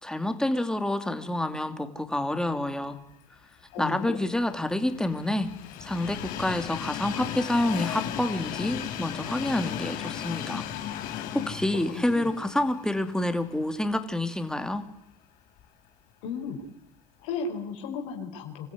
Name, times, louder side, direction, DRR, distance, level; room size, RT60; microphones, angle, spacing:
voice 1, 0.0-3.0 3.8-5.5 5.8-10.7 11.0-14.8, left 1 dB, 5° left, 8 dB, 2.6 m, -28 dB
voice 2, 3.7-4.2 11.7-12.3 16.2-16.6 17.2-18.7, left 5 dB, 80° left, 2 dB, 4.9 m, -35 dB
Train, 3.8-14.0 14.4-14.5 15.6-15.7, left 11 dB, 65° left, 3.3 m, -36 dB
26.5 x 14.5 x 9.6 m, 0.83 s
supercardioid pair, 95°, 16 cm